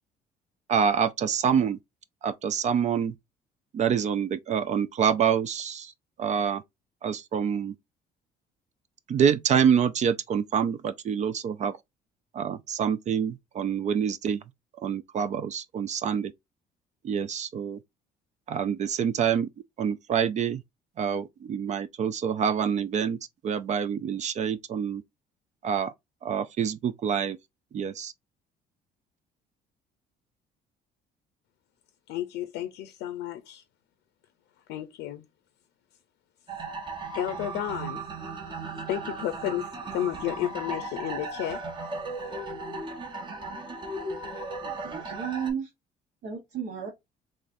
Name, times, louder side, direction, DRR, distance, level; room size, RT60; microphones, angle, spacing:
voice 1, 0.7-1.8 2.2-3.1 3.7-5.9 6.2-6.6 7.0-7.7 9.1-11.8 12.3-14.4 14.8-16.3 17.0-17.8 18.5-19.5 19.8-20.6 21.0-23.2 23.4-25.0 25.6-25.9 26.2-27.4 27.7-28.1, right 7 dB, 45° right, 0.4 m, -26 dB
voice 2, 32.1-33.6 34.7-35.2 37.1-38.0 38.9-41.6, left 12 dB, 85° left, 0.6 m, -32 dB
sound 1, 36.5-45.5, right 3 dB, 30° right, 0.9 m, -36 dB
voice 3, 44.6-45.7 46.2-46.9, right 8 dB, 70° right, 1.2 m, -34 dB
3.7 x 3.2 x 2.6 m
cardioid pair, 110°, 17 cm